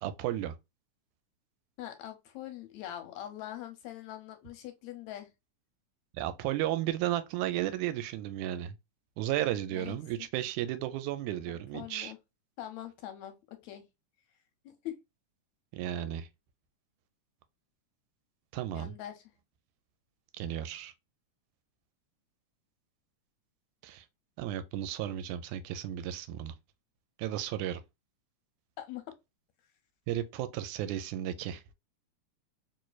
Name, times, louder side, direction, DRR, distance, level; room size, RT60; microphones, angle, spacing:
voice 1, 0.0-0.6 6.1-8.8 9.2-12.1 15.7-16.3 18.5-18.9 20.3-20.9 23.8-24.1 24.4-26.5 27.2-27.8 30.1-31.6, right 12 dB, 85° right, 2.0 m, -34 dB
voice 2, 1.8-5.3 9.7-10.0 11.5-12.2 12.6-13.8 14.7-14.9 18.7-19.2 28.8-29.0, left 12 dB, 75° left, 1.8 m, -43 dB
4.3 x 3.2 x 2.2 m
omnidirectional pair, 3.4 m